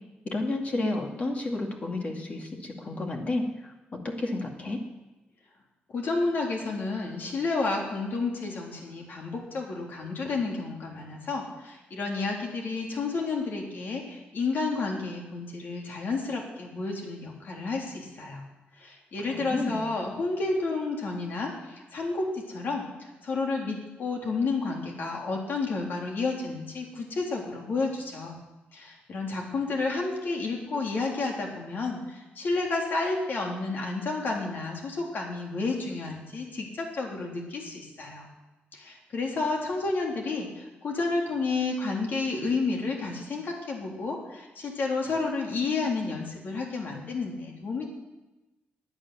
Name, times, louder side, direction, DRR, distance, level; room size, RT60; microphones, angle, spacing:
voice 1, 0.3-3.7 4.0-4.8 19.2-19.8, left 2 dB, 40° left, 2 dB, 2.2 m, -31 dB
voice 2, 5.9-18.4 18.8-28.4 28.7-38.3 38.7-47.9, left 3 dB, 60° left, 0 dB, 3.6 m, -31 dB
13.0 x 9.7 x 9.7 m, 1.1 s
cardioid pair, 115°, 4 cm